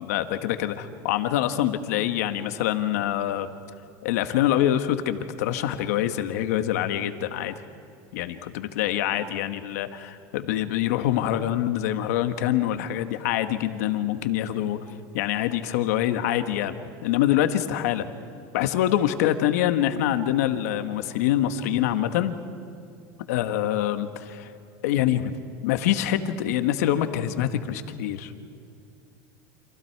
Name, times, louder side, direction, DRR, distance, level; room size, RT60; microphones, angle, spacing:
voice 1, 0.0-3.5 4.0-7.5 8.1-14.8 15.1-16.8 17.0-18.1 18.5-22.4 23.3-24.5 24.8-25.3 25.6-28.3, left 12 dB, 85° left, 9 dB, 1.5 m, -25 dB
29.0 x 27.0 x 4.7 m, 2.6 s
supercardioid pair, 150°, 8 cm